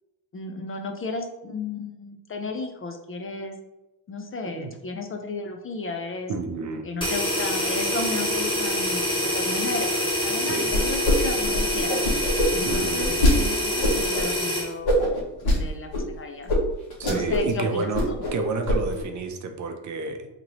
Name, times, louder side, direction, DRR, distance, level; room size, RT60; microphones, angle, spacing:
voice 1, 0.3-3.6 4.1-6.3 6.8-12.0 12.5-15.0 15.4-16.5 17.1-18.2, left 3 dB, 30° left, 4 dB, 0.4 m, -34 dB
voice 2, 6.3-6.9 10.4-10.8 12.7-13.3 17.0-18.0 18.3-20.3, right 4 dB, 45° right, 5 dB, 0.6 m, -30 dB
sound 1, 7.0-14.7, left 1 dB, 10° left, 1.5 m, -26 dB
sound 2, 10.7-11.1 11.4-13.3 13.8-14.2 14.8-15.6 15.9-16.0 16.5-16.6 16.9-17.5 17.8-18.3 18.7-19.0, left 1 dB, 65° left, 1.3 m, -22 dB
2.9 x 2.8 x 3.9 m, 0.97 s
cardioid pair, 95°, 42 cm